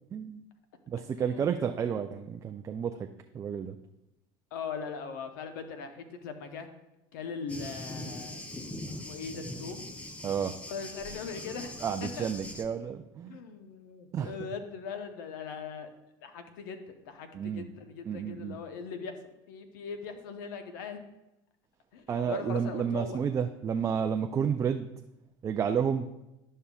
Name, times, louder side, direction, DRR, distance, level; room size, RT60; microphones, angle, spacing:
voice 1, 0.1-0.4 0.9-3.1 3.3-3.8 10.2-10.5 11.8-13.4 14.1-14.3 17.3-17.7 18.1-18.6 22.1-24.9 25.4-26.1, right 7 dB, 30° right, 5 dB, 0.4 m, -31 dB
voice 2, 1.2-1.7 4.5-6.7 7.1-8.4 9.0-9.9 10.7-12.3 13.3-15.9 16.2-21.0 21.9-23.2, left 5 dB, 85° left, 7 dB, 0.8 m, -40 dB
Thunder, 7.5-12.6, left 1 dB, 15° left, 0.7 m, -41 dB
11.5 x 5.5 x 2.3 m, 0.92 s
supercardioid pair, 105°, 10 cm